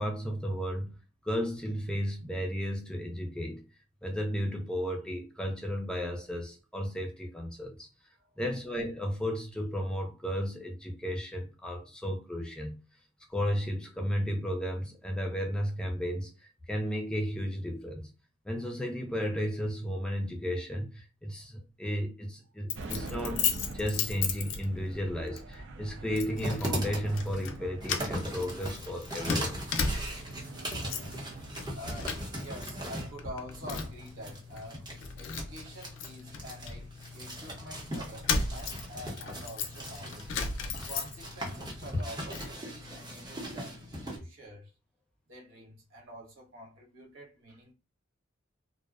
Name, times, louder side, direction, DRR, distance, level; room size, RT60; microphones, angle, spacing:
voice 1, 0.0-3.6 4.0-7.9 8.4-12.8 13.3-16.3 16.7-18.1 18.5-23.4 23.7-29.6, equal, 5° left, 0.4 m, -34 dB
Keys jangling, 22.7-25.0 25.4-25.6 26.2-26.8 27.1-27.6 27.8-30.3 30.6-31.2 31.5-32.7 33.0-34.1 34.6-34.7 35.0-37.3 37.9-41.5 41.8-42.5, left 5 dB, 70° left, 0.4 m, -35 dB
sound 1, 22.7-41.9, right 2 dB, 65° right, 0.5 m, -47 dB
sound 2, 26.3-44.2, equal, 20° right, 0.7 m, -39 dB
voice 2, 31.7-40.3 40.9-43.9 44.1-44.7 45.3-47.7, equal, 85° right, 0.9 m, -47 dB
2.5 x 2.0 x 2.3 m
head